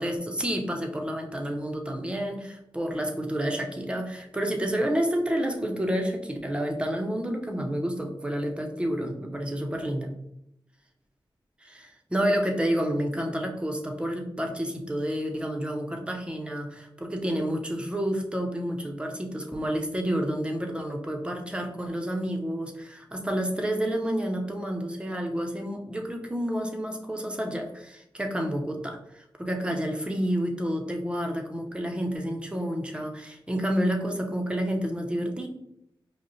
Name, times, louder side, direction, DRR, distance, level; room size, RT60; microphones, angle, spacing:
voice 1, 0.0-10.1 11.6-35.5, equal, 10° right, 3 dB, 0.6 m, -29 dB
5.0 x 2.1 x 3.1 m, 0.78 s
wide cardioid pair, 95°, 9 cm